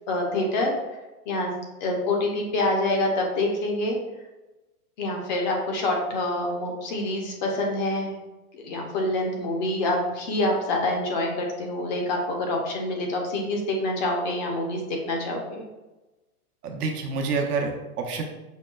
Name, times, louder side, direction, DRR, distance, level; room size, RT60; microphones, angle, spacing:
voice 1, 0.1-0.7 1.3-1.5 1.8-4.0 5.0-8.1 8.5-15.6, left 2 dB, 30° left, 1 dB, 0.5 m, -26 dB
voice 2, 16.6-18.2, right 4 dB, 75° right, 2 dB, 0.8 m, -28 dB
5.3 x 2.1 x 2.3 m, 1.1 s
hypercardioid pair, 125°, 47 cm